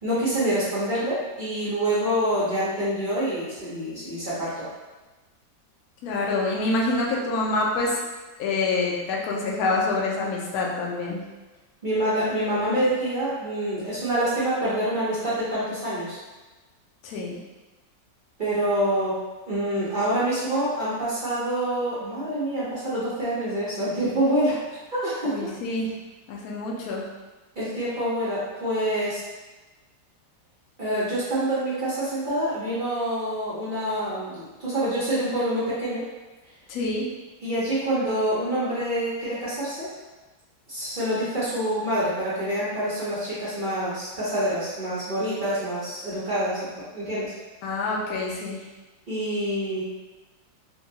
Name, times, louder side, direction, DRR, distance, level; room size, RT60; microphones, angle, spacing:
voice 1, 0.0-4.6 11.8-16.2 18.4-19.2 19.5-24.6 24.9-25.4 27.6-29.2 30.8-36.0 37.4-39.9 40.7-47.3 49.1-49.8, right 1 dB, 60° right, -10 dB, 0.5 m, -26 dB
voice 2, 6.0-8.1 8.4-11.2 17.0-17.4 25.3-25.9 26.3-27.1 36.7-37.0 47.6-48.6, left 3 dB, 65° left, -2 dB, 1.0 m, -26 dB
3.8 x 2.2 x 2.7 m, 1.2 s
omnidirectional pair, 1.9 m